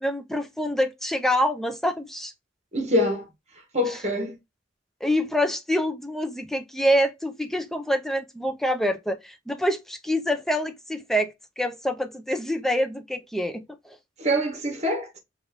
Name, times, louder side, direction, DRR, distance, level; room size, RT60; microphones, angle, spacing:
voice 1, 0.0-2.3 5.0-14.0, equal, ahead, 0.5 m, -26 dB
voice 2, 2.7-3.3 3.7-4.4 14.2-15.1, equal, 35° right, 1.3 m, -24 dB
5.1 x 2.5 x 3.6 m
head